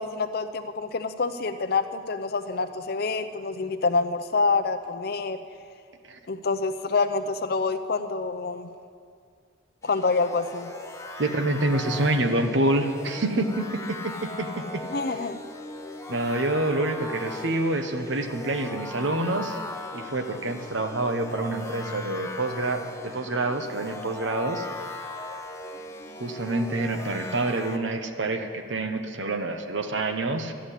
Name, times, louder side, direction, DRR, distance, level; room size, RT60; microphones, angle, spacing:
voice 1, 0.0-5.4 6.3-8.7 9.8-10.7 14.9-15.4, left 4 dB, 50° left, 10 dB, 0.6 m, -27 dB
sound 1, 9.8-27.8, left 2 dB, 15° left, 0.8 m, -39 dB
voice 2, 11.2-14.8 16.1-19.6 19.9-24.6 26.2-30.5, right 2 dB, 70° right, 7 dB, 1.0 m, -27 dB
12.5 x 7.4 x 9.9 m, 2.2 s
head